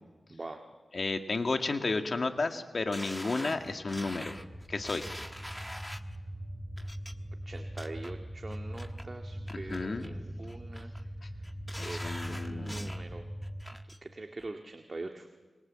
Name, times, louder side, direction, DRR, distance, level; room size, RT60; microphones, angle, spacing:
voice 1, 0.3-0.6 7.5-10.9 11.2-11.5 11.8-13.3 14.0-15.3, right 2 dB, 40° right, 4 dB, 1.9 m, -43 dB
voice 2, 0.9-4.4 4.7-5.1 9.5-10.2 11.2-11.3 11.8-12.9, left 3 dB, 55° left, 6 dB, 2.1 m, -32 dB
sound 1, 2.9-6.2 6.8-7.1 7.5-8.1 8.5-9.0 9.5-10.1 10.5-11.0 11.4-13.0 13.4-14.0 14.4-14.5, equal, 5° left, 1.3 m, -44 dB
sound 2, 3.6-13.6, equal, 15° right, 4.5 m, -41 dB
26.5 x 25.0 x 7.7 m, 1.4 s
wide cardioid pair, 65°, 0 cm